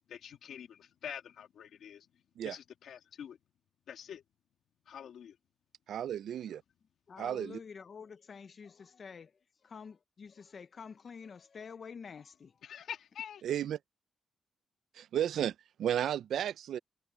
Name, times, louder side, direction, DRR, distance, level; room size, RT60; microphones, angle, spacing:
voice 1, 0.1-3.4 3.9-4.2 4.9-5.4 12.6-13.4, left 8 dB, 70° left, 2.1 m, -46 dB
voice 2, 5.9-6.6 7.2-7.6 13.4-13.8 15.0-16.8, right 10 dB, 75° right, 0.4 m, -33 dB
voice 3, 7.1-12.6, left 6 dB, 40° left, 0.5 m, -48 dB
wide cardioid pair, 165°, 0 cm